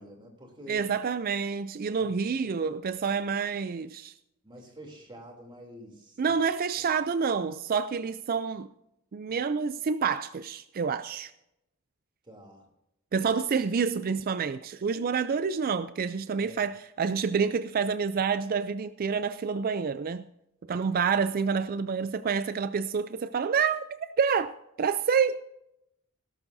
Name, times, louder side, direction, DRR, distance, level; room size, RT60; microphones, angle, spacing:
voice 1, 0.0-0.9 2.0-2.6 4.4-6.3 12.2-12.6 13.2-13.3 16.4-16.6, right 1 dB, 20° right, 3.0 m, -48 dB
voice 2, 0.7-4.1 6.2-8.7 9.1-11.3 13.1-20.2 20.7-24.5 24.8-25.4, right 6 dB, 40° right, 0.4 m, -28 dB
18.0 x 12.5 x 2.7 m
head